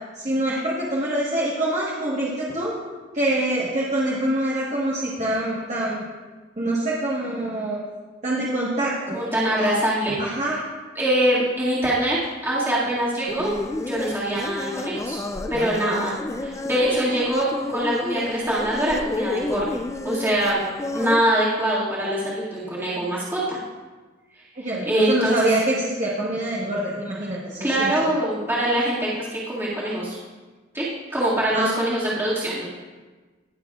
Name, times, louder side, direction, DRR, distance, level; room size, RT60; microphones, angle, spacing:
voice 1, 0.1-2.7 3.1-6.0 6.6-7.8 8.2-9.2 10.2-10.6 24.5-28.2 31.5-31.7, right 1 dB, 40° right, -5 dB, 1.4 m, -25 dB
voice 2, 9.1-10.3 11.0-12.2 12.4-13.5 13.8-15.2 15.5-16.1 16.4-19.7 20.0-20.7 20.9-23.6 24.6-25.5 27.6-30.2 30.7-30.9 31.1-32.7, right 1 dB, 10° right, -9 dB, 2.1 m, -23 dB
sound 1, 13.3-21.2, left 2 dB, 15° left, 0.4 m, -30 dB
20.5 x 6.8 x 2.4 m, 1.3 s
head